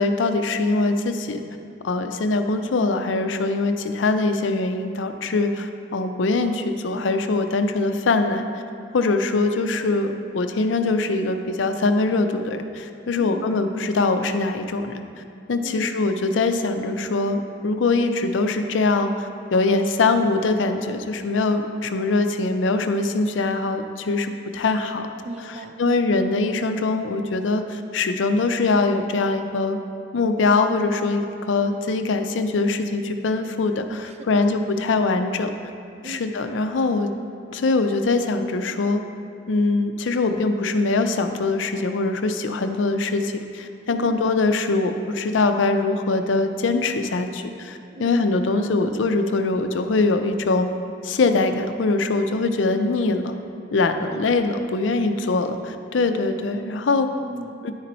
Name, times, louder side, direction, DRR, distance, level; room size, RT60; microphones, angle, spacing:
voice 1, 0.0-1.4 1.8-8.6 8.9-15.0 15.5-25.0 25.8-29.8 30.1-35.5 36.0-37.1 37.5-39.0 39.5-50.7 51.0-53.3 53.7-57.1 57.6-57.7, left 3 dB, 85° left, 7 dB, 0.5 m, -22 dB
voice 2, 13.2-13.5 15.6-15.9 25.2-26.1 34.0-34.5 36.0-36.3 43.9-44.2 48.0-48.3 54.1-54.6 57.1-57.7, right 1 dB, 35° right, 5 dB, 0.4 m, -38 dB
10.5 x 4.0 x 4.2 m, 2.5 s
head